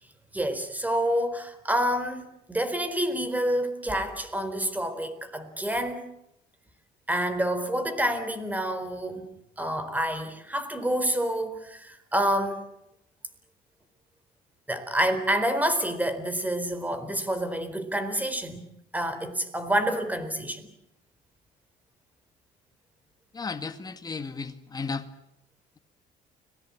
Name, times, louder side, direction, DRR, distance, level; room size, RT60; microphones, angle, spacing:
voice 1, 0.3-6.1 7.1-9.3 9.6-12.6 14.7-18.7 18.9-20.7, right 1 dB, 10° right, 4.2 m, -28 dB
voice 2, 23.3-25.0, left 4 dB, 25° left, 2.2 m, -34 dB
30.0 x 19.5 x 8.7 m
cardioid pair, 110°, 17 cm